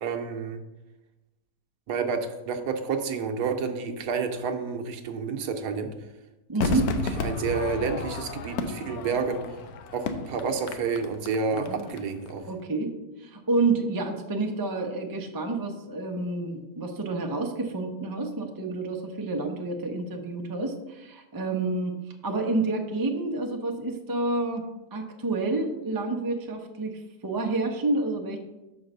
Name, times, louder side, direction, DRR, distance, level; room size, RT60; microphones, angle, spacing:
voice 1, 0.0-0.6 1.9-5.9 6.6-6.8 7.2-9.4 9.9-12.5, right 5 dB, 70° right, 5 dB, 1.2 m, -29 dB
voice 2, 6.5-6.9 11.5-11.9 12.4-12.9 13.2-22.0 22.2-24.6 24.9-28.4, right 3 dB, 30° right, 3 dB, 0.4 m, -29 dB
Crowd / Fireworks, 6.6-12.0 12.3-12.4, left 4 dB, 70° left, 1.1 m, -32 dB
6.0 x 4.7 x 6.6 m, 1.0 s
omnidirectional pair, 1.8 m